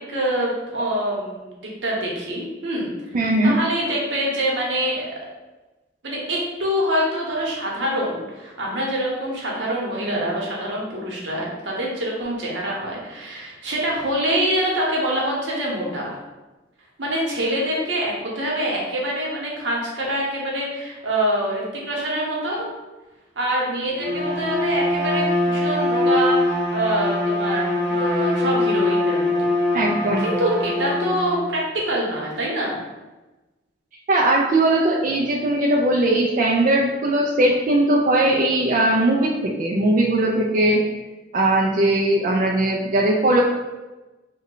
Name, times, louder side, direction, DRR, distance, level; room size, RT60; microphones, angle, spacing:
voice 1, 0.0-3.2 3.4-5.0 6.0-16.2 17.0-22.7 23.4-29.5 30.2-32.8, right 1 dB, 80° right, -3 dB, 0.9 m, -25 dB
voice 2, 3.1-3.6 29.7-30.2 34.1-40.8 41.3-43.4, right 1 dB, 45° right, -3 dB, 0.3 m, -19 dB
Bowed string instrument, 23.9-31.5, left 2 dB, 35° left, 1.0 m, -23 dB
3.1 x 2.2 x 3.7 m, 1.1 s
head